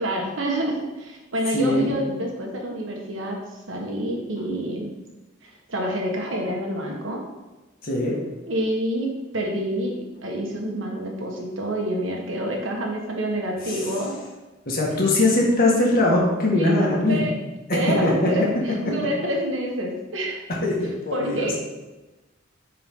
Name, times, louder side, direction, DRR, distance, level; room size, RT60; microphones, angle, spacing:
voice 1, 0.0-3.4 3.7-4.9 5.7-7.2 8.5-14.2 16.5-17.3 17.7-20.4 21.1-21.5, right 1 dB, 85° right, 0 dB, 1.5 m, -27 dB
voice 2, 1.5-1.9 7.8-8.2 13.7-13.8 14.7-17.2 18.0-18.3 20.6-21.5, left 2 dB, 50° left, -3 dB, 1.9 m, -21 dB
9.2 x 4.6 x 3.8 m, 1.1 s
head